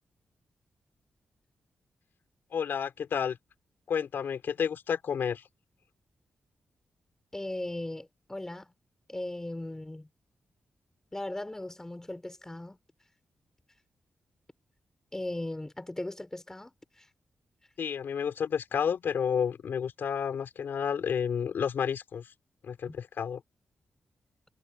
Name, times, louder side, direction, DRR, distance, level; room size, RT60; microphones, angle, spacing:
voice 1, 2.5-3.4 3.9-5.4 17.8-22.3 22.6-23.4, left 7 dB, 75° left, 5.1 m, -30 dB
voice 2, 7.3-8.7 9.1-10.1 11.1-12.8 15.1-16.7 17.0-17.1 22.9-23.0, left 1 dB, 15° left, 5.3 m, -37 dB
wide cardioid pair, 110°, 4 cm